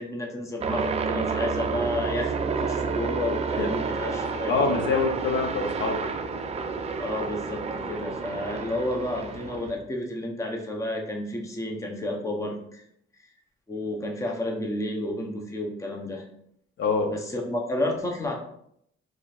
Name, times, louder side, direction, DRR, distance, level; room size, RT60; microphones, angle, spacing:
voice 1, 0.0-4.8 7.0-12.8 13.7-16.2 17.1-18.3, left 1 dB, 15° left, 1 dB, 0.6 m, -31 dB
sound 1, 0.6-9.7, right 5 dB, 35° right, 0.4 m, -30 dB
voice 2, 4.5-6.0 16.8-17.1, left 4 dB, 70° left, 1 dB, 0.7 m, -25 dB
3.8 x 3.1 x 2.4 m, 0.71 s
cardioid pair, 90°, 20 cm